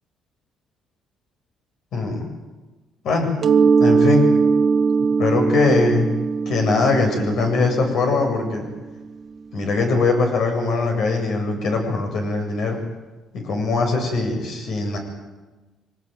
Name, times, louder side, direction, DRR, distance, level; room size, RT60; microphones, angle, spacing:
voice 1, 1.9-2.2 3.0-3.3 3.8-4.3 5.2-6.2 6.5-8.7 9.5-12.8 13.3-15.0, left 3 dB, 65° left, 3 dB, 8.0 m, -21 dB
Mallet percussion, 3.4-9.0, right 5 dB, 40° right, 1.5 m, -20 dB
24.5 x 19.5 x 9.4 m, 1.2 s
cardioid pair, 120°, 0 cm